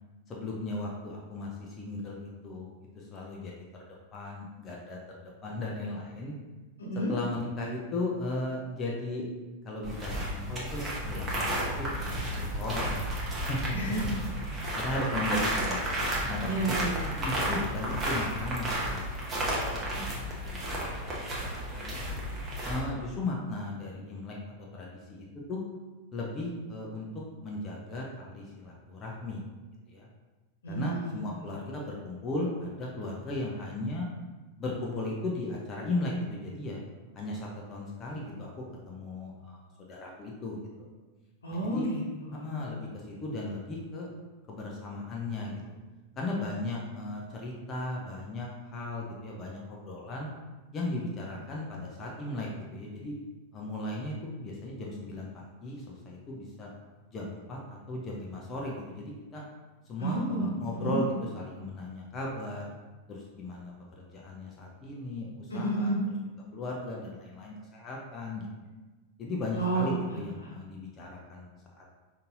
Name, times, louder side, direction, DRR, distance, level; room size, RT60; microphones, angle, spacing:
voice 1, 0.3-2.7 2.9-3.8 4.1-5.0 5.4-6.3 7.1-9.2 9.6-13.1 13.5-13.6 14.1-14.2 14.5-15.9 16.3-16.8 17.2-22.0 22.6-24.4 24.7-25.6 26.1-27.1 27.4-29.4 29.9-30.1 30.7-34.1 34.6-36.8 37.1-40.9 41.7-41.8 42.3-44.1 44.5-45.5 46.2-50.3 50.7-53.1 53.5-56.7 57.1-59.4 59.9-61.1 61.3-62.7 63.1-65.9 66.5-68.5 69.2-72.0, left 2 dB, 25° left, -3 dB, 0.6 m, -36 dB
sound 1, 9.8-22.8, equal, 20° right, 0.9 m, -32 dB
voice 2, 13.7-14.1 16.4-17.1 30.6-31.1 41.4-42.5 60.0-60.5 60.8-61.0 65.5-66.0 69.6-70.5, right 2 dB, 70° left, -3 dB, 1.0 m, -31 dB
5.2 x 2.7 x 2.6 m, 1.2 s
figure-of-eight pair, 90°, 0 cm